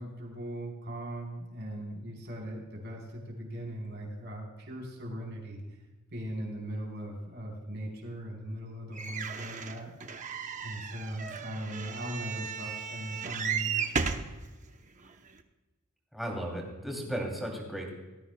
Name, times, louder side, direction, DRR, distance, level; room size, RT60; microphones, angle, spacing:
voice 1, 0.0-5.6 6.1-10.4 10.6-14.1, right 1 dB, 50° right, -1 dB, 4.0 m, -39 dB
sound 1, 9.0-14.3 15.0-15.1 15.4-15.5, right 6 dB, 35° right, 0.8 m, -35 dB
voice 2, 16.1-17.9, equal, ahead, -1 dB, 2.8 m, -35 dB
18.0 x 14.0 x 2.3 m, 1.2 s
head